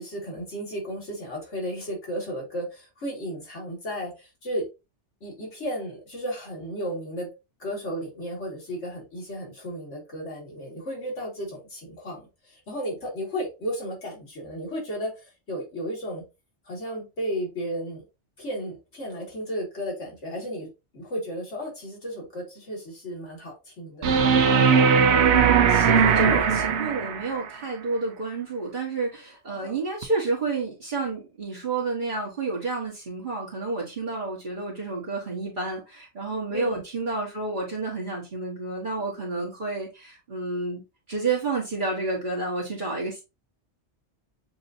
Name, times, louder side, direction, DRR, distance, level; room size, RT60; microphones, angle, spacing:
voice 1, 0.0-4.7 5.2-7.3 7.6-16.2 16.7-18.0 18.4-20.7 20.9-24.1 29.5-29.8 36.5-36.8, equal, 90° left, 2.3 m, -34 dB
sound 1, 24.0-27.4 30.0-30.1, right 6 dB, 75° right, 1.0 m, -19 dB
voice 2, 25.1-40.8 41.1-43.2, right 3 dB, 45° right, 1.4 m, -30 dB
7.0 x 2.7 x 2.7 m
omnidirectional pair, 1.2 m